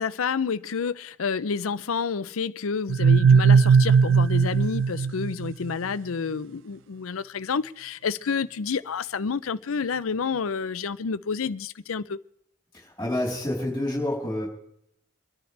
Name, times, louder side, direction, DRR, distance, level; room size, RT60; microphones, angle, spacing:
voice 1, 0.0-12.2, left 5 dB, 90° left, 0.6 m, -29 dB
sound 1, 2.9-5.7, right 5 dB, 70° right, 0.4 m, -18 dB
voice 2, 12.7-14.5, left 1 dB, 10° left, 4.1 m, -28 dB
26.0 x 10.5 x 3.3 m
head